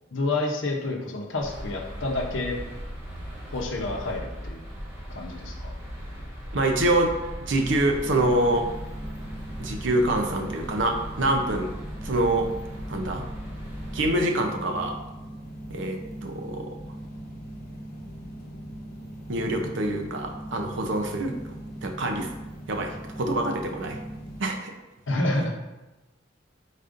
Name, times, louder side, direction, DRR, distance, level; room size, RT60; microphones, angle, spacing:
voice 1, 0.1-2.6 3.5-4.6 5.1-5.7 25.1-25.6, left 2 dB, 75° left, 1 dB, 0.7 m, -29 dB
sound 1, 1.4-14.1, equal, 15° right, 1.0 m, -38 dB
voice 2, 6.5-7.1 7.5-8.6 9.6-11.7 12.0-12.5 12.9-13.2 13.9-15.0 15.7-16.7 19.3-21.3 21.8-22.3 22.7-24.0 24.4-24.7, right 1 dB, 70° right, 3 dB, 0.6 m, -25 dB
sound 2, 8.0-24.4, right 1 dB, 50° left, 1.0 m, -40 dB
4.9 x 4.1 x 2.5 m, 1.1 s
head